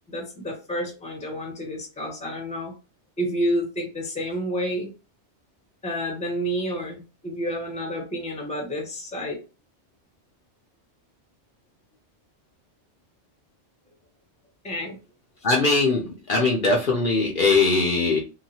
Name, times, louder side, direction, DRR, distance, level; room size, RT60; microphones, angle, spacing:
voice 1, 0.1-2.7 3.2-4.9 5.8-9.4 14.6-15.0, equal, 5° left, 1 dB, 0.7 m, -29 dB
voice 2, 15.4-18.2, left 3 dB, 55° left, -2 dB, 0.7 m, -21 dB
2.9 x 2.2 x 2.7 m, 0.30 s
omnidirectional pair, 1.2 m